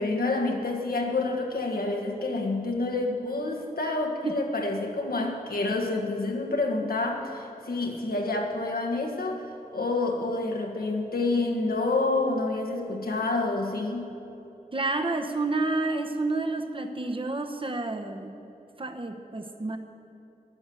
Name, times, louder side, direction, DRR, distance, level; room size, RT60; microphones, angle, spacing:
voice 1, 0.0-14.2, left 2 dB, 80° left, 2 dB, 1.5 m, -28 dB
voice 2, 14.7-18.4 18.8-19.8, right 2 dB, 35° right, 5 dB, 1.0 m, -29 dB
11.5 x 10.0 x 6.9 m, 2.9 s
wide cardioid pair, 50°, 15 cm